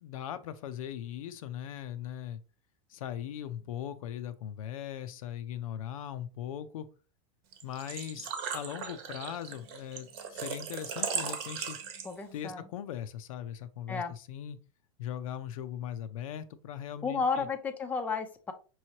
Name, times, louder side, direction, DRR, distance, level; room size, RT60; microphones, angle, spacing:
voice 1, 0.0-2.4 2.9-6.9 7.6-11.8 12.3-14.6 15.0-17.5, left 10 dB, 80° left, 10 dB, 0.5 m, -39 dB
Engine / Trickle dribble / Fill (with liquid), 7.5-12.4, right 6 dB, 50° right, 1.0 m, -37 dB
voice 2, 12.0-12.7 13.9-14.1 17.0-18.5, left 5 dB, 10° left, 5 dB, 0.5 m, -32 dB
5.5 x 3.1 x 2.8 m, 0.35 s
supercardioid pair, 145°, 18 cm